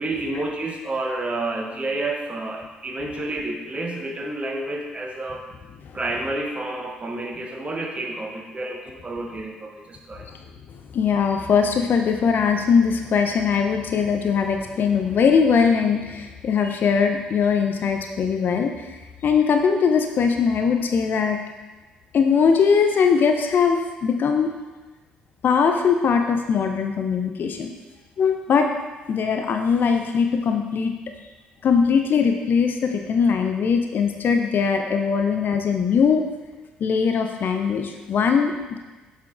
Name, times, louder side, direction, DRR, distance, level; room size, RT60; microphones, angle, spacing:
voice 1, 0.0-5.4 5.9-10.2, right 2 dB, 25° right, 1 dB, 1.1 m, -29 dB
voice 2, 10.9-18.9 19.2-21.4 22.1-24.5 25.4-27.7 28.2-28.7 29.1-30.9 31.6-36.2 36.8-38.8, left 6 dB, 50° left, 4 dB, 0.6 m, -20 dB
7.6 x 5.7 x 2.5 m, 1.2 s
figure-of-eight pair, 45°, 4 cm